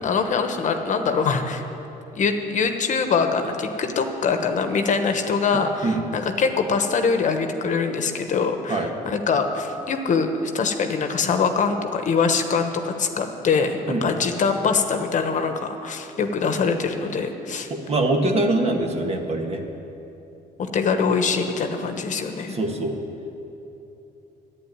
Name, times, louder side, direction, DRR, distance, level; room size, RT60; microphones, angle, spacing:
voice 1, 0.0-1.6 2.1-17.7 20.6-22.6, left 5 dB, 50° left, 6 dB, 1.2 m, -23 dB
voice 2, 17.9-19.6 22.5-23.0, right 2 dB, 35° right, 3 dB, 1.6 m, -23 dB
11.5 x 8.9 x 9.6 m, 3.0 s
cardioid pair, 110°, 17 cm